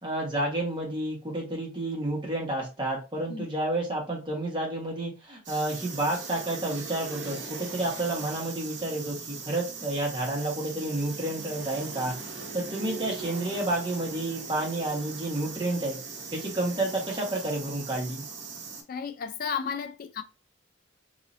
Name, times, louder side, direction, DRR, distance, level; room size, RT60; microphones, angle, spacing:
voice 1, 0.0-12.1 12.5-16.0 16.3-18.2, right 1 dB, 25° right, 1.3 m, -30 dB
sound 1, 5.4-18.8, right 4 dB, 70° right, 0.9 m, -39 dB
voice 2, 18.9-20.2, left 6 dB, 50° left, 0.3 m, -33 dB
3.1 x 2.8 x 2.6 m
head